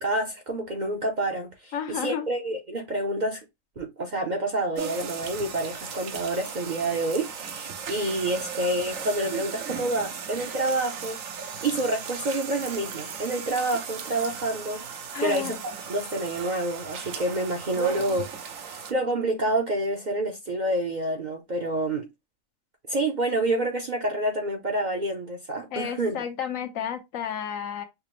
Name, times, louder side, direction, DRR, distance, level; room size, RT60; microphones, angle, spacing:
voice 1, 0.0-3.4 3.8-11.2 11.6-22.1 22.9-26.2, right 1 dB, 45° right, 0.6 m, -28 dB
voice 2, 1.7-2.3 15.1-15.6 25.7-27.8, left 8 dB, 75° left, 1.1 m, -32 dB
sound 1, 4.8-18.9, right 7 dB, 75° right, 1.1 m, -36 dB
5.8 x 2.0 x 3.0 m
omnidirectional pair, 1.4 m